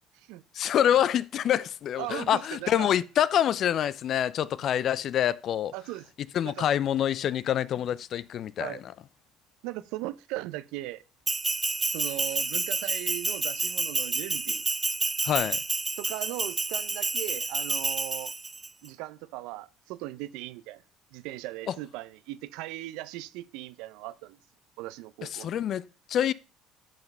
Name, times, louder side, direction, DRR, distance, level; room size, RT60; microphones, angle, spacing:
voice 1, 0.5-5.7 6.3-8.9 15.2-15.6 21.7-21.8 25.2-26.3, left 10 dB, 55° left, 0.5 m, -26 dB
voice 2, 2.0-2.9 5.7-6.1 6.4-6.7 8.6-8.8 9.6-11.0 11.9-14.6 16.0-18.3 18.8-20.8 21.1-24.4 24.8-25.5, right 17 dB, 70° right, 0.6 m, -38 dB
Bell, 11.3-18.7, right 3 dB, 20° right, 0.4 m, -29 dB
10.5 x 4.9 x 5.4 m
hypercardioid pair, 65°, 0 cm